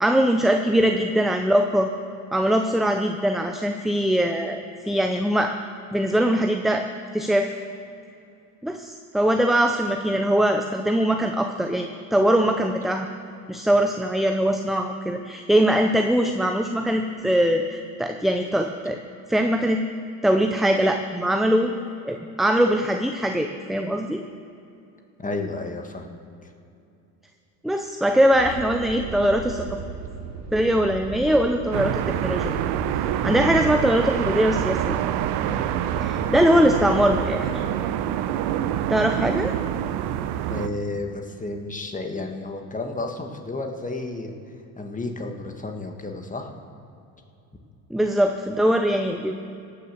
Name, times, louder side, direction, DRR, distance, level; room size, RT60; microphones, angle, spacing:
voice 1, 0.0-1.9 2.3-5.5 5.9-6.9 7.1-7.5 8.6-13.1 13.5-19.0 19.3-19.8 20.2-21.7 22.1-24.2 27.6-29.8 30.5-32.6 33.2-35.0 36.0-37.6 38.9-39.5 47.9-49.3, equal, ahead, 5 dB, 0.5 m, -22 dB
voice 2, 25.2-26.1 26.4-26.5 40.5-44.3 44.8-46.5, left 2 dB, 15° left, 4 dB, 1.7 m, -32 dB
sound 1, 28.3-37.4, right 4 dB, 35° right, 1.6 m, -36 dB
sound 2, 31.7-40.7, right 11 dB, 60° right, 0.8 m, -26 dB
17.5 x 6.8 x 6.8 m, 2.7 s
hypercardioid pair, 80°, 45 cm